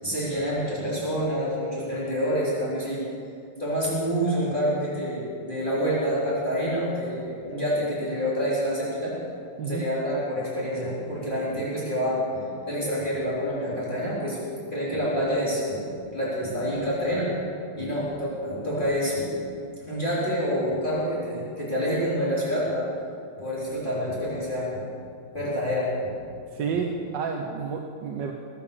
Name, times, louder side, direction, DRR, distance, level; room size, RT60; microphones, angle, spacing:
voice 1, 0.0-3.0 3.6-9.1 9.7-14.4 14.7-17.3 17.8-19.4 19.9-22.9 23.4-24.9 25.3-26.1, equal, 20° left, -8 dB, 4.0 m, -27 dB
voice 2, 26.5-28.3, right 5 dB, 60° right, 3 dB, 1.5 m, -30 dB
21.0 x 9.2 x 6.9 m, 2.5 s
omnidirectional pair, 2.4 m